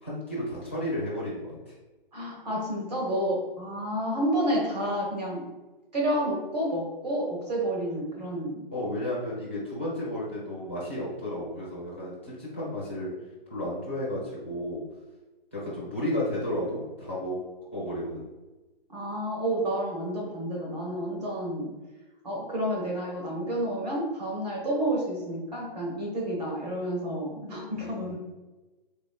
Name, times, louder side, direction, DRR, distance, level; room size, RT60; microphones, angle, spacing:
voice 1, 0.0-1.7 8.7-13.1 13.5-14.8 15.5-17.4 17.7-18.2 27.8-28.2, left 1 dB, 15° left, -10 dB, 0.5 m, -33 dB
voice 2, 2.1-5.5 5.9-8.6 18.9-21.8 22.2-28.2, right 1 dB, 45° right, -2 dB, 1.1 m, -30 dB
3.8 x 3.0 x 2.3 m, 1.1 s
hypercardioid pair, 175°, 30 cm